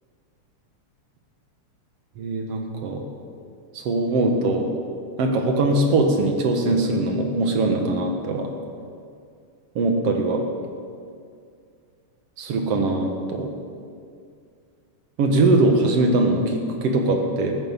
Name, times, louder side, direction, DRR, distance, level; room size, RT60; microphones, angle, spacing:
voice 1, 2.2-3.0 3.7-4.7 5.2-8.5 9.8-10.5 12.4-13.5 15.2-17.5, right 2 dB, 60° right, 3 dB, 2.3 m, -21 dB
14.0 x 9.6 x 7.2 m, 2.3 s
omnidirectional pair, 3.4 m